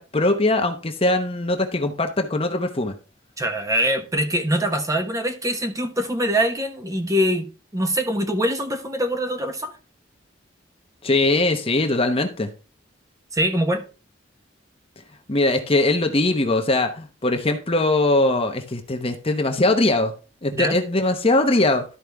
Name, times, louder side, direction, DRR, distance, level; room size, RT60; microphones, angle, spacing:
voice 1, 0.0-2.9 11.0-12.5 15.3-20.1 20.4-21.8, left 2 dB, 30° left, 0.9 m, -21 dB
voice 2, 3.4-7.4 7.7-9.7 13.3-13.8 20.5-20.8, equal, 15° right, 1.0 m, -23 dB
12.5 x 5.0 x 3.5 m
head